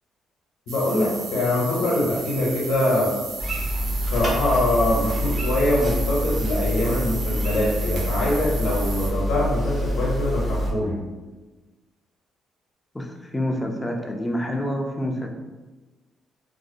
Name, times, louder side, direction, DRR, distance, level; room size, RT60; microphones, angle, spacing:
voice 1, 0.7-3.1 4.1-10.9, left 1 dB, 85° left, -6 dB, 0.7 m, -23 dB
sound 1, 0.7-9.1, right 4 dB, 80° right, 0.4 m, -35 dB
sound 2, 3.4-10.7, equal, 30° right, 0.8 m, -26 dB
voice 2, 12.9-15.3, equal, 15° left, 2 dB, 0.4 m, -27 dB
2.5 x 2.0 x 2.6 m, 1.2 s
cardioid pair, 90°, 0 cm